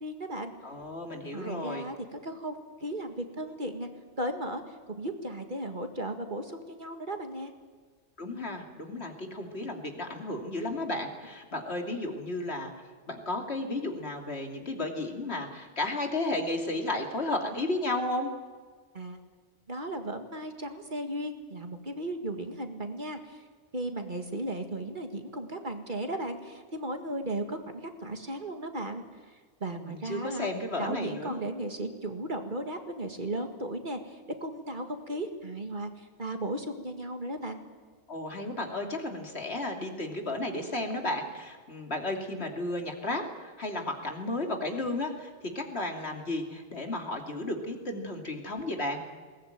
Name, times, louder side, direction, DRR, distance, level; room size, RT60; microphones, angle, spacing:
voice 1, 0.0-0.5 1.3-3.9 4.2-7.5 18.9-19.2 19.7-23.4 23.7-29.0 29.6-30.5 30.8-37.6, right 1 dB, 45° right, 5 dB, 2.1 m, -36 dB
voice 2, 0.6-1.9 8.2-12.7 13.1-18.3 29.7-31.4 38.1-45.3 45.5-49.0, left 2 dB, 65° left, 3 dB, 3.1 m, -33 dB
21.0 x 19.0 x 9.3 m, 1.5 s
omnidirectional pair, 1.2 m